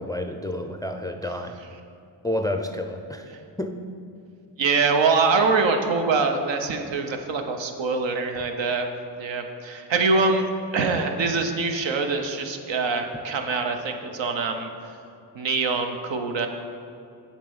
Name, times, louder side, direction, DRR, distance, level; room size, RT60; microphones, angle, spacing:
voice 1, 0.0-1.6 2.2-3.3 3.6-3.8, left 1 dB, 10° left, 5 dB, 0.4 m, -29 dB
voice 2, 4.6-8.9 9.2-14.7 15.3-16.5, right 4 dB, 70° right, 5 dB, 0.9 m, -24 dB
7.3 x 4.2 x 5.5 m, 2.6 s
supercardioid pair, 50°, 46 cm